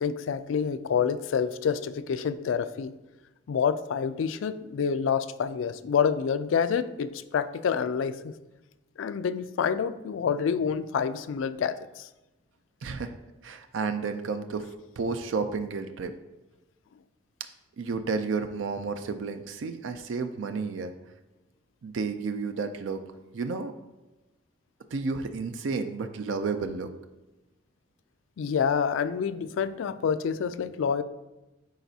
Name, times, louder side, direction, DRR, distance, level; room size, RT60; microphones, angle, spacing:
voice 1, 0.0-2.9 3.5-8.3 9.0-12.1 28.4-31.0, left 7 dB, 85° left, 12 dB, 0.3 m, -27 dB
voice 2, 12.8-13.2 13.4-14.7 15.0-16.1 17.8-20.9 21.8-23.0 23.3-23.7 24.9-26.9, right 4 dB, 80° right, 8 dB, 0.4 m, -31 dB
10.5 x 4.0 x 2.7 m, 1.0 s
head